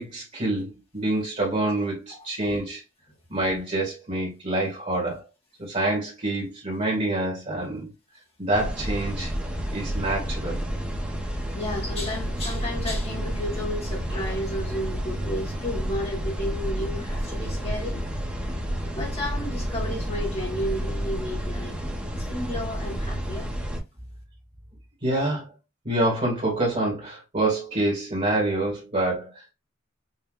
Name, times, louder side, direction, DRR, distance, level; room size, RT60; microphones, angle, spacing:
voice 1, 0.0-2.8 3.3-5.2 5.6-7.9 8.4-9.3 9.7-10.6 25.0-25.5 25.8-29.3, right 2 dB, 35° right, 2.0 m, -26 dB
sound 1, 8.5-23.8, equal, 5° right, 1.3 m, -30 dB
voice 2, 11.3-18.4 19.0-21.8 22.2-23.5, left 1 dB, 30° left, 1.6 m, -33 dB
5.6 x 2.8 x 2.4 m
head